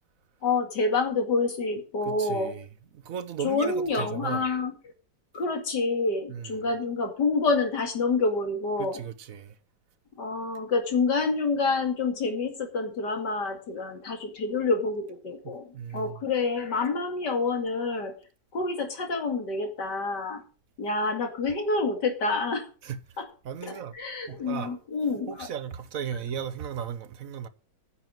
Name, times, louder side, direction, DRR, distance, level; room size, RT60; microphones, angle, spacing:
voice 1, 0.4-2.5 3.4-4.7 5.3-9.0 10.2-15.7 15.9-18.1 18.5-20.4 20.8-22.6 23.2-23.3 23.9-25.5, left 3 dB, 75° left, 2.8 m, -27 dB
voice 2, 2.1-2.7 2.9-4.4 6.3-6.5 8.8-9.5 15.7-16.2 22.8-23.0 23.4-23.9 24.3-24.7 25.3-27.5, right 8 dB, 55° right, 1.2 m, -36 dB
9.9 x 7.2 x 7.6 m
omnidirectional pair, 1.9 m